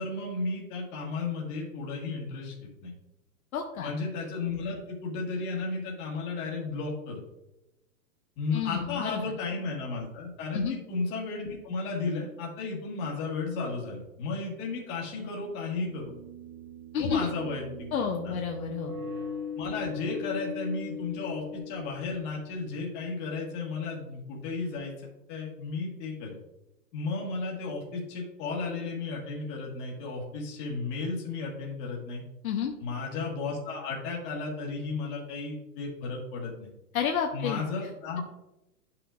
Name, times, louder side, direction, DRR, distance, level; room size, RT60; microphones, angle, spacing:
voice 1, 0.0-2.9 3.8-7.2 8.4-16.1 17.0-17.9 18.2-18.4 19.6-24.9 25.3-26.4 26.9-32.2 32.8-36.7 37.3-38.2, left 3 dB, 20° left, -2 dB, 1.7 m, -34 dB
voice 2, 3.5-3.9 8.5-9.2 10.5-10.7 16.9-17.3 17.9-18.9 32.4-32.7 36.9-37.6, left 7 dB, 60° left, 2 dB, 0.9 m, -30 dB
sound 1, 14.0-14.1 15.6-22.5, left 4 dB, 15° right, 0.6 m, -40 dB
10.5 x 5.8 x 2.5 m, 0.92 s
hypercardioid pair, 160°, 49 cm